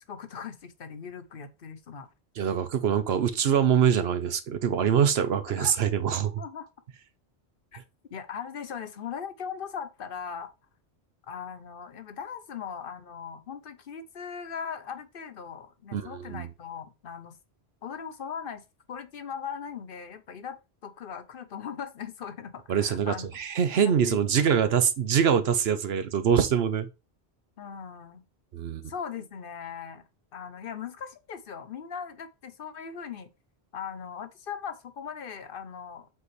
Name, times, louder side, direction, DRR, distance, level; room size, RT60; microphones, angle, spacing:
voice 1, 0.1-2.1 5.6-5.8 6.4-6.7 7.7-7.8 8.1-10.5 11.3-17.4 17.8-18.6 18.9-23.3 23.8-24.2 27.6-28.2 28.9-30.0 30.3-33.3 33.7-36.1, left 7 dB, 60° left, 0.9 m, -39 dB
voice 2, 2.4-6.3 15.9-16.5 22.7-26.9 28.5-28.9, right 8 dB, 70° right, 0.9 m, -24 dB
7.6 x 4.1 x 3.1 m
omnidirectional pair, 1.1 m